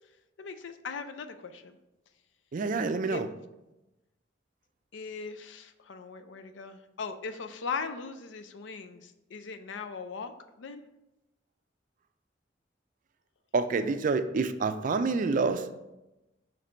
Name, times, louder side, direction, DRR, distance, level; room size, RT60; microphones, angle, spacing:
voice 1, 0.4-1.8 3.1-3.2 4.9-10.8, left 5 dB, 80° left, 9 dB, 0.5 m, -39 dB
voice 2, 2.5-3.3 13.5-15.7, right 4 dB, 45° right, 10 dB, 0.4 m, -27 dB
5.8 x 3.2 x 5.0 m, 0.96 s
head